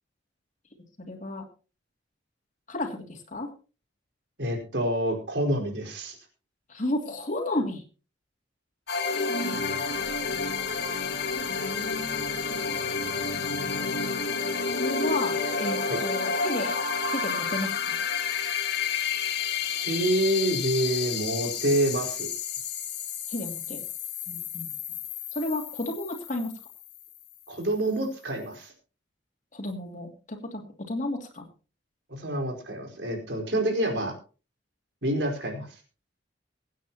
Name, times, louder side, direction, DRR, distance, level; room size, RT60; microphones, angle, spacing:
voice 1, 1.0-1.4 2.7-3.5 6.7-7.8 9.4-9.6 11.5-12.8 14.8-16.8 17.1-18.0 23.3-23.8 24.3-24.7 25.3-26.5 29.5-31.5, left 2 dB, 45° left, 3 dB, 2.7 m, -33 dB
voice 2, 4.4-6.2 15.9-16.0 19.8-22.3 27.5-28.7 32.1-34.1 35.0-35.8, right 1 dB, 70° right, 2 dB, 4.7 m, -27 dB
sound 1, 8.9-27.3, left 5 dB, 65° left, 2.1 m, -30 dB
23.5 x 9.3 x 3.0 m, 0.34 s
head